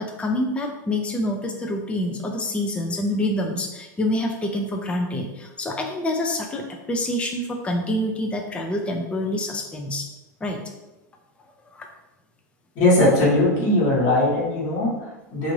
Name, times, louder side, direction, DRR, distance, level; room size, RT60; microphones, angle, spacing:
voice 1, 0.0-10.0 10.4-10.6 11.7-11.9, left 1 dB, 10° left, 2 dB, 0.4 m, -26 dB
voice 2, 12.7-15.5, left 1 dB, 45° left, -6 dB, 1.2 m, -20 dB
2.6 x 2.5 x 3.1 m, 1.0 s
figure-of-eight pair, 85°, 10 cm